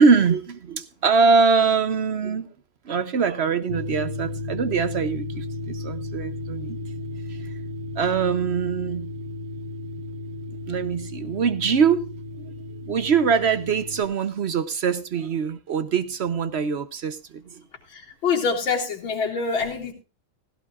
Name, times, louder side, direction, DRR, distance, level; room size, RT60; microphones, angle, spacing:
voice 1, 0.0-2.5 2.9-6.8 7.3-7.4 8.0-9.1 10.7-12.1 12.4-12.5 12.8-17.6, right 5 dB, 75° right, 0.5 m, -23 dB
sound 1, 3.7-14.0, left 2 dB, 60° right, 2.0 m, -34 dB
voice 2, 17.9-19.9, left 5 dB, 70° left, 3.3 m, -25 dB
16.0 x 16.0 x 2.4 m
omnidirectional pair, 2.2 m